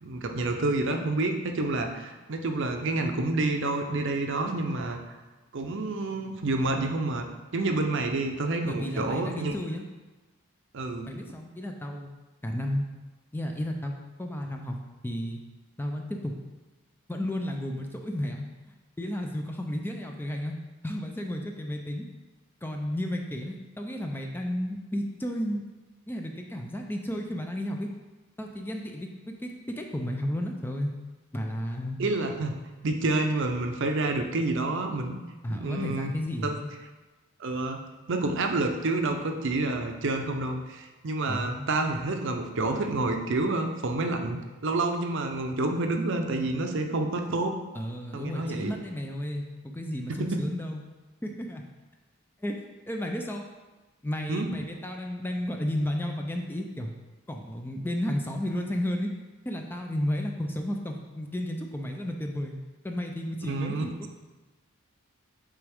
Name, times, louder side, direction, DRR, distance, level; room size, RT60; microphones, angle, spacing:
voice 1, 0.0-5.0 5.5-7.3 7.5-9.5 10.7-11.1 32.0-32.5 32.8-35.2 35.5-36.1 36.4-36.6 37.4-47.6 48.1-48.7 50.1-50.5 54.3-54.5 63.4-63.9, right 2 dB, 55° right, 5 dB, 0.6 m, -28 dB
voice 2, 8.6-9.8 11.1-12.1 12.4-12.9 13.3-13.9 14.2-14.8 15.0-15.4 15.8-16.3 17.1-18.4 19.0-20.6 20.8-22.1 22.6-25.6 26.1-27.9 28.4-30.9 31.3-32.0 35.4-36.7 41.3-41.7 47.7-50.8 51.2-51.6 52.4-53.4 54.0-56.9 57.3-59.1 59.5-62.6 62.8-64.1, left 1 dB, 10° left, 2 dB, 0.4 m, -32 dB
8.1 x 3.5 x 3.5 m, 1.2 s
head